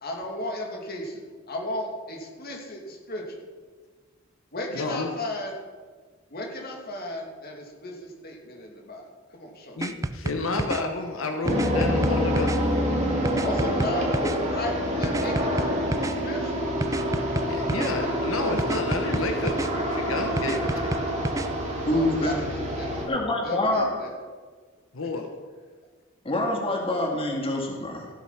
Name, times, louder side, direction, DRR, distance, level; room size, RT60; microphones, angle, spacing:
voice 1, 0.0-3.5 4.5-5.6 6.3-9.8 13.4-15.7 16.1-16.7 21.7-23.0 23.4-24.1, left 1 dB, 50° left, 0 dB, 2.7 m, -35 dB
voice 2, 4.7-5.1 9.7-12.7 17.5-21.1 24.9-25.3, left 3 dB, 85° left, 4 dB, 1.2 m, -30 dB
sound 1, 9.8-10.8 11.5-12.6 13.2-14.4 15.0-16.1 16.8-17.9 18.6-19.7 20.4-21.5, right 2 dB, 15° right, 0.4 m, -29 dB
sound 2, 11.4-23.1, equal, 35° right, 2.5 m, -27 dB
voice 3, 21.9-22.3 23.1-23.9 26.2-28.1, left 1 dB, 30° left, 0 dB, 2.0 m, -26 dB
15.0 x 7.5 x 5.9 m, 1.5 s
head